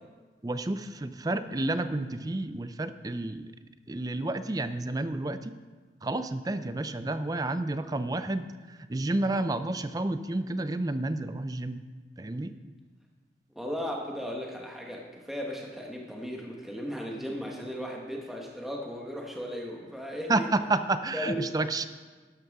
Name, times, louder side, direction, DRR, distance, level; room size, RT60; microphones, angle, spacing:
voice 1, 0.4-3.5 3.9-5.5 6.0-11.8 12.2-12.5 20.3-21.9, right 2 dB, 20° right, 11 dB, 0.4 m, -30 dB
voice 2, 13.5-20.5 21.1-21.4, equal, ahead, -1 dB, 1.2 m, -36 dB
12.5 x 11.5 x 3.6 m, 1.4 s
head